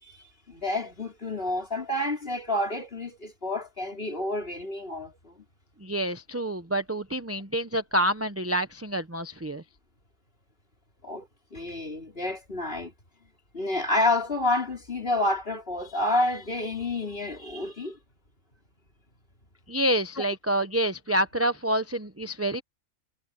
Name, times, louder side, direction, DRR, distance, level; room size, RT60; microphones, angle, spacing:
voice 1, 0.0-5.4 11.0-12.9 13.5-18.0, left 2 dB, 40° left, 4.7 m, -29 dB
voice 2, 5.8-9.6 19.7-22.6, right 1 dB, 15° right, 0.6 m, -27 dB
omnidirectional pair, 1.5 m